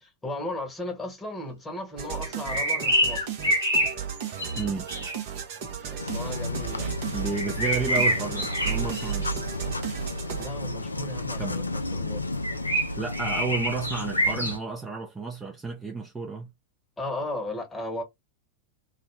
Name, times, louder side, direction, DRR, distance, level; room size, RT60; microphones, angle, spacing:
voice 1, 0.2-3.3 5.5-5.6 5.9-6.9 10.4-12.2 17.0-18.0, left 1 dB, 10° left, 1.0 m, -35 dB
sound 1, 2.0-10.5, right 8 dB, 50° right, 0.7 m, -34 dB
sound 2, 2.2-5.2 7.3-9.4 12.4-14.6, equal, 85° right, 1.1 m, -26 dB
voice 2, 4.6-4.9 7.1-9.3 11.4-11.6 13.0-16.5, right 4 dB, 15° right, 0.5 m, -31 dB
sound 3, 6.0-14.6, left 2 dB, 80° left, 0.3 m, -33 dB
2.4 x 2.0 x 3.2 m
figure-of-eight pair, 90°, 0 cm